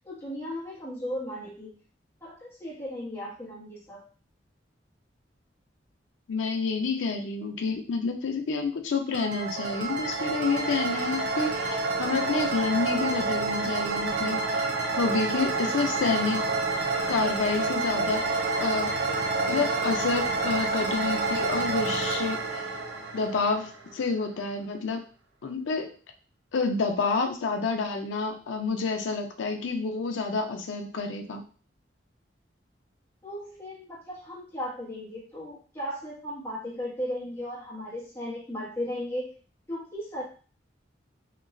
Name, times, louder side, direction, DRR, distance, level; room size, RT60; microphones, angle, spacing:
voice 1, 0.1-1.7 2.2-4.0 33.2-39.3 39.7-40.2, equal, 15° left, -6 dB, 0.9 m, -36 dB
voice 2, 6.3-14.6 15.0-16.5 17.1-18.9 19.5-22.7 23.1-25.0 25.4-25.9 26.5-31.4, left 4 dB, 85° left, 5 dB, 0.4 m, -29 dB
sound 1, 9.1-23.9, right 3 dB, 65° right, 0.5 m, -28 dB
2.9 x 2.3 x 2.5 m, 0.40 s
head